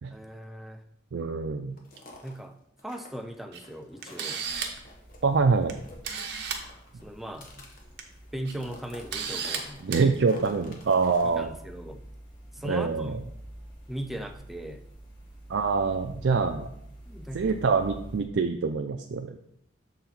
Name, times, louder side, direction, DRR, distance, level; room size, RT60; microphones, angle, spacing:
voice 1, 0.1-0.8 2.2-4.4 7.0-7.7 8.3-10.1 11.2-12.1 12.5-13.3 13.9-14.8 16.4-16.7 17.1-17.5, right 1 dB, ahead, 6 dB, 0.4 m, -39 dB
voice 2, 1.1-1.8 5.2-5.8 9.8-11.5 12.6-13.1 15.5-16.7 17.3-19.4, right 4 dB, 70° right, 5 dB, 0.4 m, -25 dB
sound 1, 1.8-2.4 2.8-5.3 5.6-6.2 6.5-8.3 8.6-11.4, left 2 dB, 45° left, 1.1 m, -50 dB
Camera, 3.5-3.6 4.0-4.8 5.7-5.8 6.0-6.6 7.8-8.0 8.4-8.5 9.1-9.6 9.9-10.0, right 6 dB, 55° right, 0.8 m, -33 dB
sound 2, 4.4-18.2, right 1 dB, 25° left, 1.7 m, -48 dB
6.9 x 3.9 x 4.3 m, 0.75 s
head